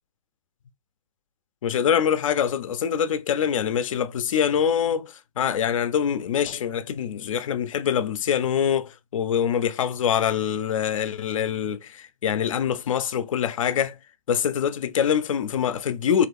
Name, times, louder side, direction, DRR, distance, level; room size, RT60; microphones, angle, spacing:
voice 1, 1.6-14.0 14.3-16.3, left 8 dB, 60° left, 0.4 m, -24 dB
2.9 x 2.4 x 3.4 m
figure-of-eight pair, 125°, 19 cm